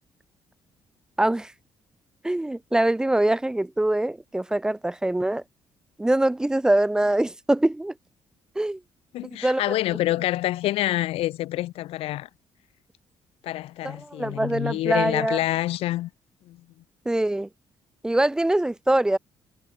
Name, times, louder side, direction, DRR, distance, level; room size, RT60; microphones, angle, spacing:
voice 1, 1.2-1.5 2.2-5.4 6.0-7.9 8.6-8.8 9.4-9.6 13.8-15.4 17.1-17.5 18.0-19.2, right 1 dB, 5° right, 0.4 m, -23 dB
voice 2, 9.1-12.3 13.4-16.1 16.5-16.6, left 15 dB, 85° left, 0.4 m, -27 dB
cardioid pair, 125°, 10 cm